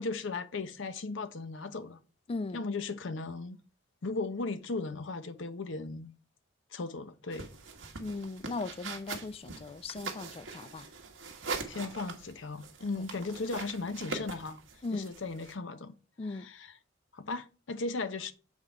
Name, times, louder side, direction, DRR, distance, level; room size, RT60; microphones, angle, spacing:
voice 1, 0.0-2.0 2.5-3.6 4.0-6.1 6.7-7.5 11.7-14.6 14.9-15.9 16.2-16.7 17.1-18.3, left 3 dB, 70° left, 0.7 m, -36 dB
voice 2, 2.3-2.6 8.0-10.9 12.9-13.0 14.8-15.1 16.2-16.5, left 3 dB, 30° left, 0.3 m, -38 dB
sound 1, 7.3-15.5, right 4 dB, 85° right, 1.3 m, -42 dB
7.3 x 3.7 x 4.5 m
head